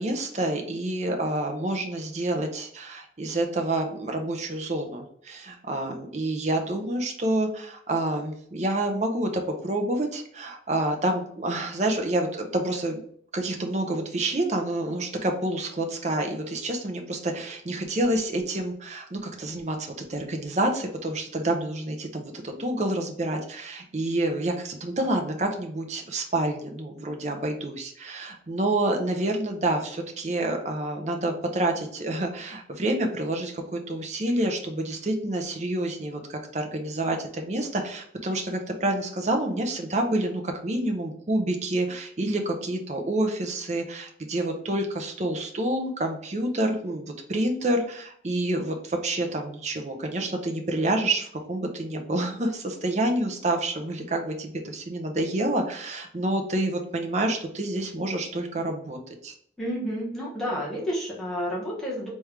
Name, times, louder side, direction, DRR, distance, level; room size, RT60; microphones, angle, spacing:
voice 1, 0.0-13.0 13.3-59.0 59.2-59.3, right 1 dB, 40° right, 3 dB, 0.7 m, -28 dB
voice 2, 59.6-62.1, equal, 5° left, -6 dB, 1.2 m, -30 dB
3.5 x 3.2 x 3.3 m, 0.63 s
head